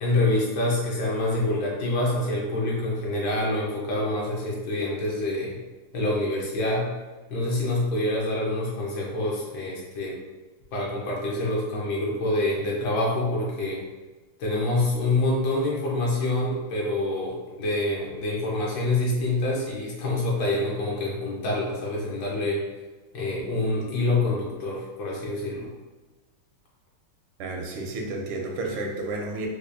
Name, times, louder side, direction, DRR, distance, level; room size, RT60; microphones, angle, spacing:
voice 1, 0.0-5.6 5.9-6.9 7.3-10.1 10.7-13.8 14.4-22.6 23.1-25.7, left 2 dB, 65° left, -3 dB, 1.3 m, -26 dB
voice 2, 27.4-29.5, right 2 dB, 85° right, 1 dB, 1.5 m, -31 dB
4.6 x 2.3 x 2.5 m, 1.2 s
omnidirectional pair, 2.4 m